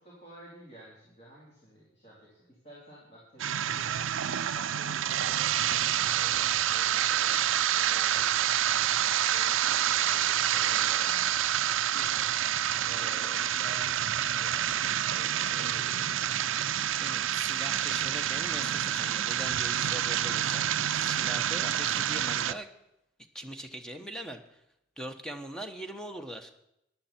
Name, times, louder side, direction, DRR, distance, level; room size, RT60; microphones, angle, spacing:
voice 1, 0.0-4.0 4.5-12.5 12.8-16.5, right 1 dB, 30° left, -6 dB, 3.9 m, -51 dB
sound 1, 3.4-22.5, right 10 dB, 80° right, 0.5 m, -28 dB
voice 2, 17.0-22.7 23.3-24.6 25.0-26.5, right 1 dB, 5° left, 6 dB, 1.1 m, -41 dB
15.0 x 11.5 x 4.4 m, 0.82 s
head